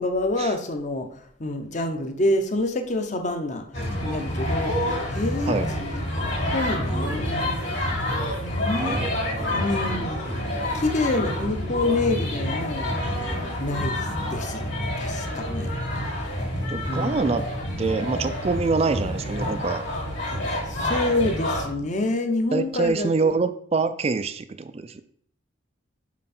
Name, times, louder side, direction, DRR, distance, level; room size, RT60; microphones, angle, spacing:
voice 1, 0.0-3.6 4.0-6.0 6.5-7.6 8.4-9.0 9.5-12.9 13.6-14.7 15.0-15.7 16.9-17.2 20.7-23.3, left 2 dB, 35° left, 6 dB, 0.8 m, -27 dB
sound 1, 3.7-21.6, left 1 dB, 60° left, 3.3 m, -28 dB
voice 2, 8.8-10.1 16.7-17.4 17.8-19.8 22.5-25.0, right 4 dB, 30° right, 11 dB, 0.3 m, -26 dB
7.3 x 5.7 x 4.3 m, 0.63 s
head